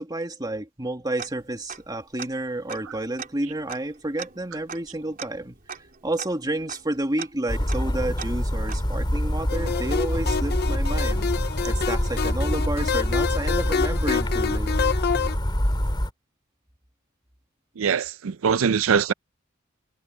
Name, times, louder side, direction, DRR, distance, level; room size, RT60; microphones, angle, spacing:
voice 1, 0.0-5.6 6.0-11.3 11.6-14.7, right 1 dB, 20° right, 2.1 m, -30 dB
Tick-tock, 1.2-1.9 2.2-2.3 2.7-9.2, right 6 dB, 45° right, 3.7 m, -41 dB
sound 1, 7.5-16.1, equal, 20° left, 3.1 m, -26 dB
sound 2, 9.5-15.4, left 6 dB, 50° left, 0.6 m, -27 dB
voice 2, 17.8-19.1, right 6 dB, 75° right, 0.5 m, -22 dB
head